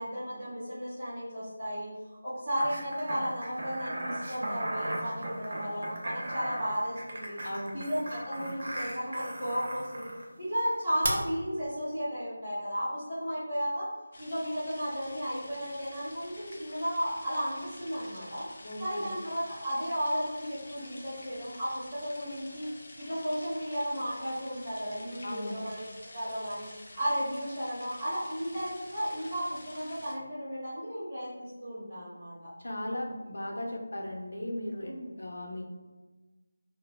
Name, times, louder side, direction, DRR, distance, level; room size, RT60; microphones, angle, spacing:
voice 1, 0.0-1.9 2.2-7.4 7.7-10.1 10.4-13.8 14.2-18.4 18.8-22.7 23.0-26.7 27.0-32.5 34.9-35.1, equal, 5° right, -20 dB, 0.7 m, -34 dB
sound 1, 2.6-10.2 11.0-11.1, right 1 dB, 45° right, 0.5 m, -37 dB
voice 2, 7.4-7.9 18.6-19.2 25.2-25.7 32.6-35.6, left 1 dB, 85° left, 0 dB, 0.6 m, -37 dB
sound 2, 14.1-30.1, left 1 dB, 30° left, 0.4 m, -49 dB
2.1 x 2.0 x 3.0 m, 1.2 s
figure-of-eight pair, 175°, 0 cm